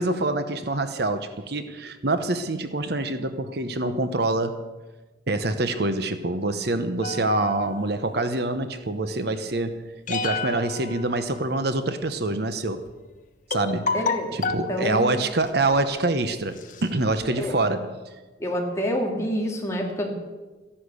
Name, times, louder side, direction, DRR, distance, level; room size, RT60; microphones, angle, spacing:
voice 1, 0.0-4.6 5.3-9.8 10.1-12.9 13.5-14.0 14.3-18.0, right 2 dB, 55° right, 9 dB, 0.9 m, -26 dB
sound 1, 7.0-8.3 10.1-11.8 12.9-13.0 13.5-14.7 15.5-15.7 16.2-16.3 16.6-17.3, left 4 dB, 45° left, 1.2 m, -31 dB
voice 2, 13.9-15.1 17.3-17.6 18.4-20.1, equal, 15° left, 0 dB, 2.6 m, -28 dB
14.0 x 11.5 x 8.3 m, 1.2 s
head